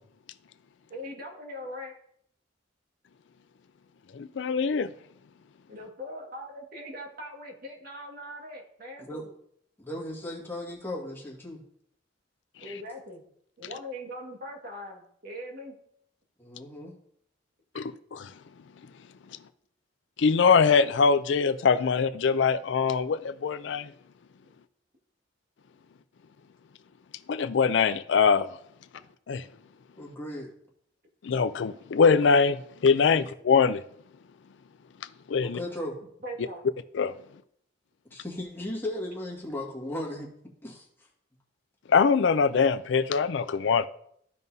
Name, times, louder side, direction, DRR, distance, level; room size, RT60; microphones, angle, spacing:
voice 1, 0.9-1.9 5.7-9.3 12.6-13.2 13.6-15.7 36.2-36.6, equal, 50° right, 1.8 m, -41 dB
voice 2, 4.1-4.9 17.7-18.3 20.2-23.9 27.3-28.5 29.3-29.4 31.2-32.6 32.8-33.8 35.3-35.6 36.9-37.1 41.9-43.9, left 5 dB, 70° left, 0.4 m, -23 dB
voice 3, 9.8-11.6 16.4-16.9 30.0-30.5 33.1-33.3 35.4-36.0 38.1-40.3 40.6-41.1, left 1 dB, 10° left, 1.9 m, -36 dB
14.0 x 5.3 x 2.7 m
head